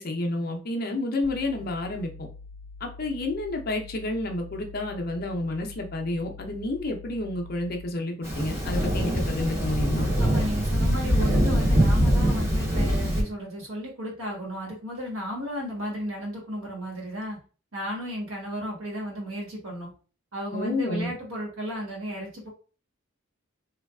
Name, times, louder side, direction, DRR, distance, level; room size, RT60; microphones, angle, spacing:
voice 1, 0.0-2.1 2.8-10.1 20.5-21.1, left 2 dB, 45° left, 2 dB, 0.5 m, -30 dB
sound 1, 1.2-8.0, left 3 dB, 60° right, 0.3 m, -45 dB
Thunder, 8.2-13.2, equal, 10° right, 0.8 m, -23 dB
voice 2, 10.2-17.4 17.7-19.9 20.3-22.5, equal, 85° right, -2 dB, 1.3 m, -34 dB
3.3 x 2.3 x 2.2 m, 0.38 s
head